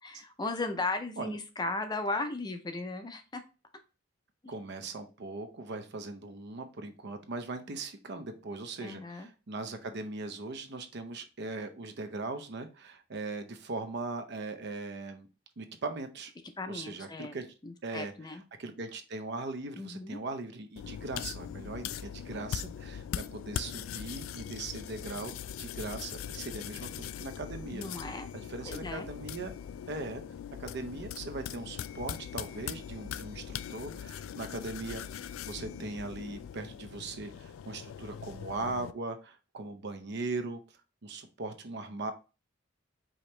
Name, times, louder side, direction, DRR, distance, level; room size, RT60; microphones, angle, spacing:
voice 1, 0.0-3.4 4.4-4.5 8.8-9.3 16.6-17.3 17.6-18.4 19.8-20.2 27.7-28.3 28.7-29.1, left 2 dB, 20° left, 7 dB, 0.5 m, -36 dB
voice 2, 4.5-15.3 15.6-16.3 16.7-17.5 17.8-18.1 18.6-29.5 29.9-30.2 30.6-40.6 41.0-42.1, right 3 dB, 55° right, 8 dB, 0.6 m, -39 dB
sound 1, 20.8-38.9, left 9 dB, 90° left, 0.3 m, -41 dB
5.0 x 2.9 x 3.1 m, 0.31 s
head